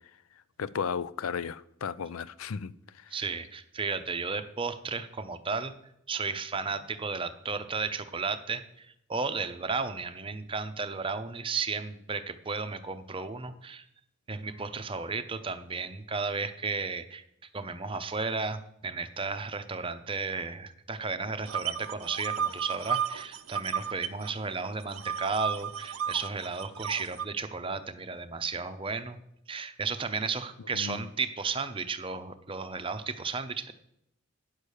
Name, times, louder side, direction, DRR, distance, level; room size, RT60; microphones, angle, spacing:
voice 1, 0.6-2.7 3.0-3.2 30.7-31.1, left 6 dB, 75° left, 0.4 m, -34 dB
voice 2, 3.1-5.7 6.1-13.8 14.3-17.2 17.5-29.2 29.5-33.7, right 4 dB, 25° right, 0.6 m, -34 dB
sound 1, 21.5-24.3 24.6-27.2, right 8 dB, 75° right, 0.6 m, -33 dB
9.7 x 6.9 x 6.5 m
head